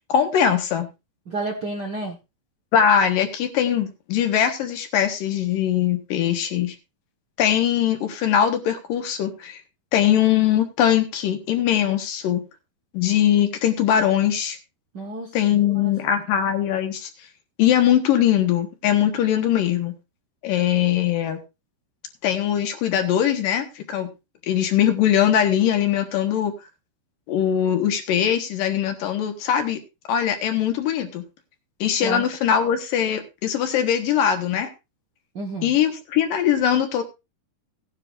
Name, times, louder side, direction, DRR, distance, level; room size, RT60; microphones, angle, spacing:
voice 1, 0.1-0.9 2.7-6.8 7.4-9.6 9.9-12.5 12.9-14.6 15.3-17.1 17.6-20.0 20.4-21.4 22.2-24.1 24.5-26.5 27.3-29.8 30.1-31.3 31.8-34.7 35.6-37.0, left 9 dB, 70° left, 6 dB, 2.8 m, -21 dB
voice 2, 1.3-2.2 14.9-15.3 15.8-15.9 32.0-32.3 35.3-35.7, right 2 dB, 75° right, 0 dB, 0.9 m, -30 dB
17.0 x 9.9 x 2.5 m, 0.25 s
omnidirectional pair, 4.2 m